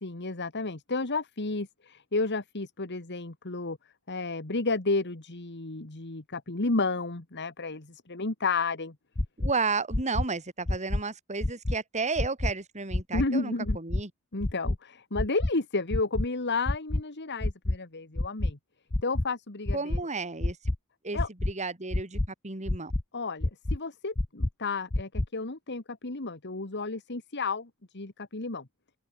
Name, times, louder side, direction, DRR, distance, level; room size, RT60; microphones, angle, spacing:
voice 1, 0.0-3.8 4.1-9.0 13.1-13.8 14.3-18.6 19.0-20.0 21.1-21.3 23.1-28.7, left 3 dB, 50° left, 1.9 m, -32 dB
sound 1, 9.2-9.5 9.9-10.2 10.7-11.0 11.4-11.8 12.2-12.5 12.9-13.3 13.7-14.0 14.4-14.8 15.2-15.5 15.9-16.3 16.7-17.0 17.4-17.8 18.2-18.5 18.9-19.2 19.7-20.0 20.4-20.8 21.2-21.5 21.9-22.3 22.7-23.0 23.4-23.8 24.2-24.5 24.9-25.3, left 1 dB, 25° left, 0.7 m, -27 dB
voice 2, 9.4-14.1 19.7-20.7 21.0-22.9, right 4 dB, 35° right, 2.8 m, -33 dB
head